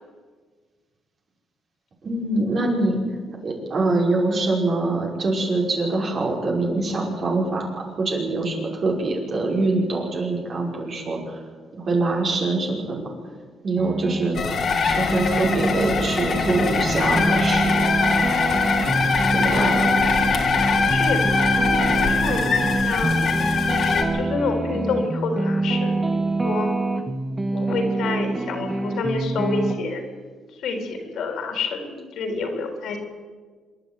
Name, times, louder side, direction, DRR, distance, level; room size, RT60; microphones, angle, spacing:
voice 1, 2.0-3.0 3.4-7.7 7.9-11.4 11.7-13.1 13.6-14.5 14.8-17.9 19.3-19.9, right 2 dB, 50° right, -1 dB, 5.7 m, -24 dB
sound 1, 13.8-14.3 14.8-29.8, right 2 dB, 20° right, 1.7 m, -25 dB
sound 2, 14.3-24.0, left 5 dB, 55° left, 2.8 m, -22 dB
voice 2, 19.4-19.9 20.8-21.2 21.5-23.2 23.8-26.7 27.5-30.0 30.5-33.0, left 4 dB, 75° left, 4 dB, 4.0 m, -28 dB
26.5 x 11.0 x 9.2 m, 1.6 s
cardioid pair, 90°, 0 cm